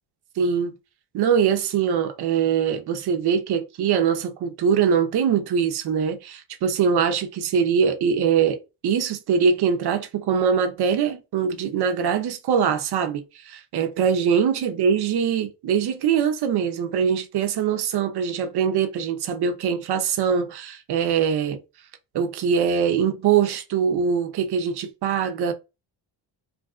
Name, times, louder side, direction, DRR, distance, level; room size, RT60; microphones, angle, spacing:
voice 1, 0.4-0.8 1.1-21.6 22.1-25.5, right 7 dB, 55° right, 0.7 m, -22 dB
2.5 x 2.4 x 2.4 m
supercardioid pair, 60°, 47 cm